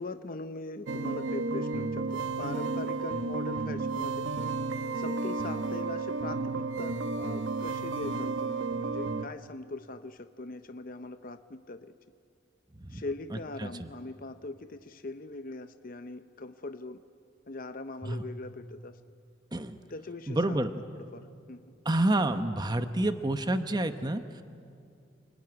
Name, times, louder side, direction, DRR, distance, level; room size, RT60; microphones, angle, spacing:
voice 1, 0.0-4.3 4.9-11.9 12.9-17.0 17.5-19.0 19.9-21.7, left 2 dB, 50° left, 9 dB, 0.7 m, -41 dB
sound 1, 0.9-9.3, right 3 dB, 80° right, 0.9 m, -32 dB
voice 2, 13.3-13.9 18.0-18.2 19.5-19.8 20.3-20.7 21.8-24.4, right 1 dB, 20° right, 9 dB, 0.9 m, -29 dB
29.0 x 20.0 x 9.6 m, 2.4 s
head